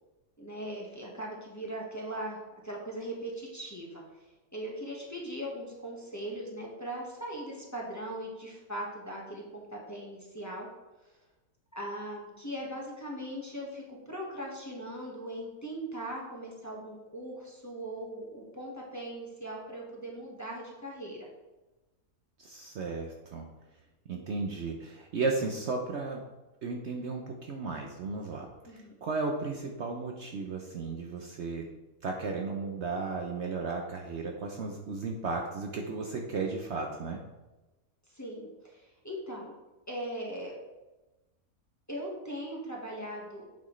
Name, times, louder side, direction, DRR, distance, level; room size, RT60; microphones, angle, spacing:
voice 1, 0.4-2.4 2.6-4.0 4.5-10.7 11.7-21.3 28.6-28.9 38.1-39.5 39.9-40.6 41.9-43.5, right 1 dB, 10° left, -3 dB, 1.3 m, -39 dB
voice 2, 22.4-23.5 24.1-26.2 26.6-31.7 32.0-37.2, right 3 dB, 60° right, 2 dB, 0.9 m, -34 dB
8.5 x 6.1 x 3.2 m, 1.1 s
omnidirectional pair, 1.5 m